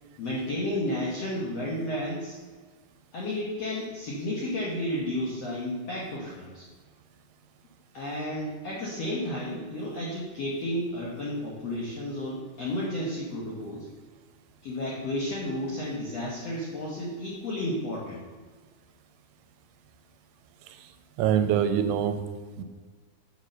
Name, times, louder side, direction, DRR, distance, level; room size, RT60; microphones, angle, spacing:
voice 1, 0.2-2.4 3.1-6.6 7.9-13.9 14.6-18.2, left 1 dB, 65° left, -5 dB, 1.5 m, -32 dB
voice 2, 21.2-22.2 22.6-22.7, right 9 dB, 90° right, 9 dB, 2.7 m, -25 dB
7.3 x 6.6 x 6.4 m, 1.4 s
omnidirectional pair, 4.8 m